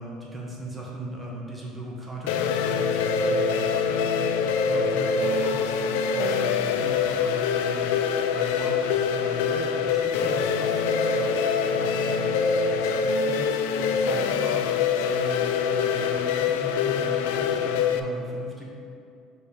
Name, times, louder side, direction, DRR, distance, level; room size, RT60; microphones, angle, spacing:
voice 1, 0.0-8.0 8.3-14.8 15.1-18.6, right 1 dB, 15° right, -3 dB, 1.1 m, -38 dB
sound 1, 2.3-18.0, left 6 dB, 85° left, 0.3 m, -24 dB
5.4 x 4.1 x 5.0 m, 2.5 s
supercardioid pair, 95°, 0 cm